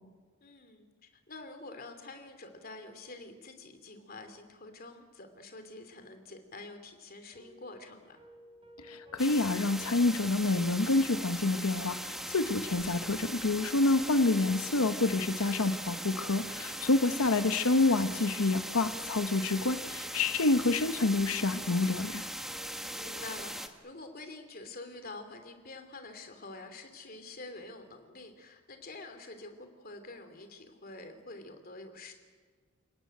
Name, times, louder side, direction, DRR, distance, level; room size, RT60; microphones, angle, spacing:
voice 1, 0.4-0.9 1.3-8.2 22.9-32.1, left 2 dB, 45° left, 7 dB, 3.0 m, -47 dB
sound 1, 7.3-23.4, left 1 dB, 25° right, 3.4 m, -56 dB
voice 2, 8.8-22.2, left 2 dB, 85° left, 10 dB, 1.0 m, -28 dB
sound 2, 9.2-23.7, equal, ahead, 1.3 m, -40 dB
29.5 x 18.0 x 9.3 m, 1.5 s
head